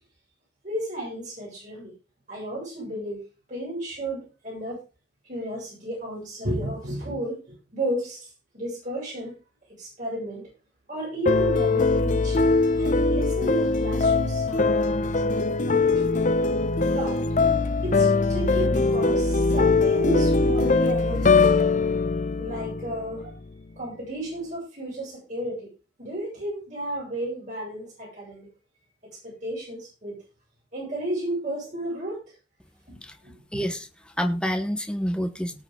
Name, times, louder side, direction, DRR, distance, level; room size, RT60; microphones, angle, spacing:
voice 1, 0.6-1.9 2.3-3.2 3.5-4.8 5.2-9.3 9.8-10.4 10.9-12.4 12.7-15.1 15.6-16.2 16.9-17.2 17.8-21.5 22.4-23.3 23.8-25.7 26.0-28.5 29.2-30.2 30.7-32.2 32.9-33.3, right 1 dB, 40° right, -5 dB, 7.1 m, -33 dB
sound 1, 11.3-23.4, left 3 dB, 40° left, 0.6 m, -22 dB
voice 2, 33.5-35.6, equal, 5° left, 7 dB, 1.0 m, -28 dB
18.5 x 6.5 x 3.8 m, 0.32 s
head